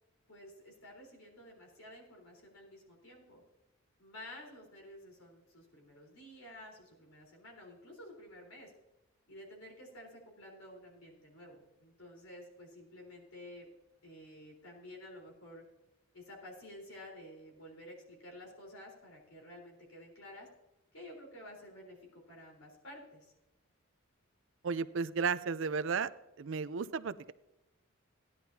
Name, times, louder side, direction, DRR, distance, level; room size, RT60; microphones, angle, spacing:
voice 1, 0.3-3.4 4.0-8.7 9.3-13.7 14.0-15.6 16.1-20.5 20.9-23.3, left 1 dB, 80° left, 0 dB, 4.0 m, -52 dB
voice 2, 24.6-26.1 26.4-27.3, right 5 dB, 60° right, 16 dB, 0.4 m, -33 dB
16.0 x 11.0 x 2.8 m, 0.93 s
head